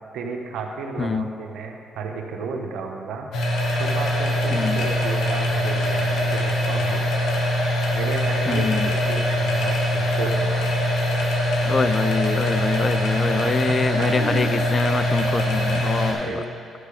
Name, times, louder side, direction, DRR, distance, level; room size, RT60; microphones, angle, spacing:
voice 1, 0.1-3.3 3.7-7.0 7.9-8.7 9.1-11.0 13.4-14.4 16.1-16.5, right 4 dB, 80° right, 2 dB, 1.1 m, -32 dB
voice 2, 1.0-1.3 4.5-4.8 8.5-8.9 11.6-16.4, left 4 dB, 35° left, 12 dB, 0.4 m, -25 dB
sound 1, 3.3-16.1, equal, 85° left, 1.6 m, -23 dB
12.0 x 6.6 x 5.0 m, 2.4 s
cardioid pair, 90°, 0 cm